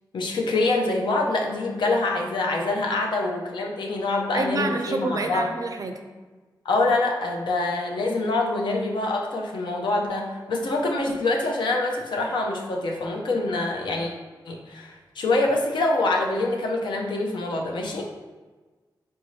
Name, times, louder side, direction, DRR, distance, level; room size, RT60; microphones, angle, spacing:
voice 1, 0.1-5.5 6.6-14.1 14.5-18.1, left 2 dB, 80° left, 0 dB, 0.6 m, -25 dB
voice 2, 4.3-6.0, right 2 dB, 50° right, 5 dB, 0.4 m, -28 dB
4.6 x 2.7 x 3.1 m, 1.3 s
wide cardioid pair, 140°, 8 cm